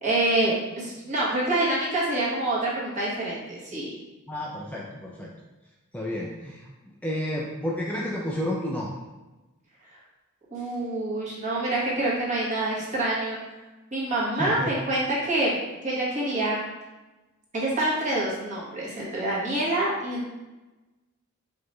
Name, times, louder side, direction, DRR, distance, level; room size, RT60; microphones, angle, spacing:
voice 1, 0.0-3.9 10.5-13.4 13.9-15.6 15.8-16.6 17.5-20.3, right 1 dB, 35° right, -6 dB, 1.3 m, -26 dB
voice 2, 4.3-5.3 5.9-6.7 7.0-9.0 14.4-14.7, left 1 dB, 5° left, -3 dB, 0.3 m, -31 dB
5.0 x 3.0 x 3.0 m, 1.1 s
head